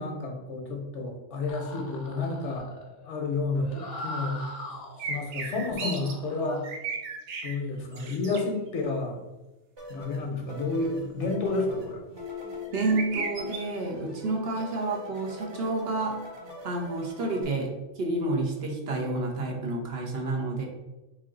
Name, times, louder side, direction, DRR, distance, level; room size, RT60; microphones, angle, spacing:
voice 1, 0.0-2.7 3.0-4.8 5.1-6.7 7.4-9.2 9.9-12.0, left 3 dB, 70° left, 1 dB, 1.2 m, -30 dB
sound 1, 1.4-5.2 5.7-6.6, left 1 dB, 40° left, 0.7 m, -41 dB
sound 2, 5.0-6.1 6.5-7.6 7.9-8.4 12.7-13.6, right 4 dB, 75° right, 1.0 m, -35 dB
sound 3, 9.8-17.4, left 3 dB, 30° right, 0.6 m, -42 dB
voice 2, 12.7-16.2 16.6-20.7, right 2 dB, 60° right, 1 dB, 1.0 m, -29 dB
3.7 x 3.2 x 3.7 m, 1.0 s
omnidirectional pair, 1.2 m